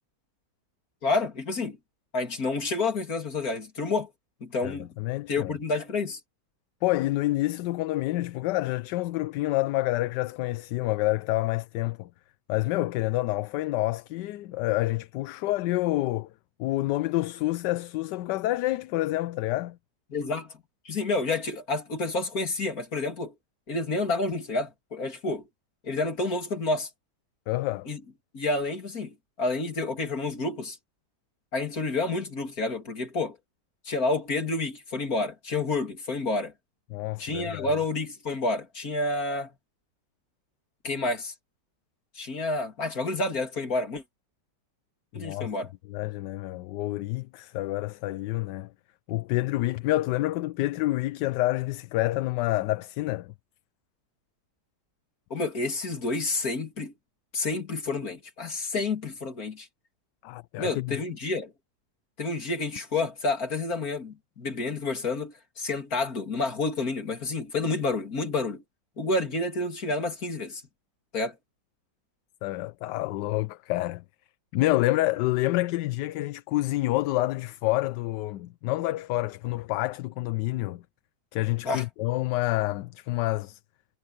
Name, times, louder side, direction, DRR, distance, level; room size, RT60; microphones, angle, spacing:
voice 1, 1.0-1.8 2.1-4.1 4.4-4.9 5.3-6.2 20.1-20.5 20.9-23.3 23.7-25.4 25.8-26.9 27.9-28.0 28.3-30.8 31.5-33.4 33.9-36.5 37.2-39.5 40.8-41.3 42.2-44.0 45.1-45.7 55.3-56.9 57.3-59.7 60.6-61.5 62.2-68.6 69.0-70.6 71.1-71.4 81.6-81.8, left 3 dB, 55° left, 3.5 m, -29 dB
voice 2, 4.6-5.6 6.8-12.1 12.5-16.3 16.6-19.8 27.5-27.9 36.9-37.7 45.1-45.5 45.9-48.7 49.1-53.3 60.2-61.0 72.4-74.0 74.5-80.8 81.3-83.6, left 17 dB, 80° left, 1.2 m, -28 dB
omnidirectional pair, 1.8 m